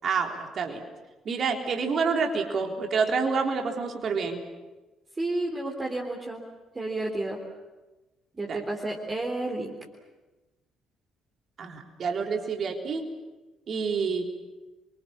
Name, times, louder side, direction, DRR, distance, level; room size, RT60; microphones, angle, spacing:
voice 1, 0.0-0.8 1.3-4.4 8.5-8.6 11.6-13.1 13.7-14.3, right 5 dB, 45° right, 3 dB, 3.8 m, -28 dB
voice 2, 5.2-6.4 6.8-7.4 8.4-9.8, right 2 dB, 25° right, 0 dB, 3.5 m, -31 dB
29.5 x 24.5 x 7.4 m, 1.1 s
figure-of-eight pair, 45°, 0 cm